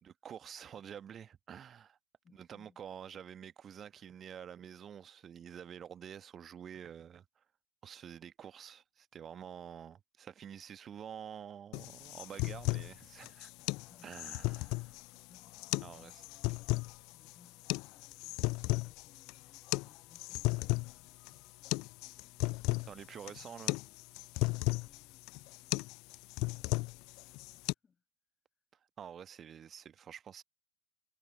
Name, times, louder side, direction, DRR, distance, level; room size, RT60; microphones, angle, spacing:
voice 1, 0.0-2.0 2.3-7.2 7.8-13.5 14.0-15.0 15.8-16.1 22.9-23.8 29.0-30.4, right 8 dB, 25° right, 1.4 m, -48 dB
voice 2, 2.2-2.8 13.6-14.7 15.3-23.5 24.5-25.8 26.3-28.0, left 6 dB, 15° left, 7.0 m, -67 dB
sound 1, 11.7-27.7, left 25 dB, 40° left, 0.4 m, -36 dB
figure-of-eight pair, 90°, 0 cm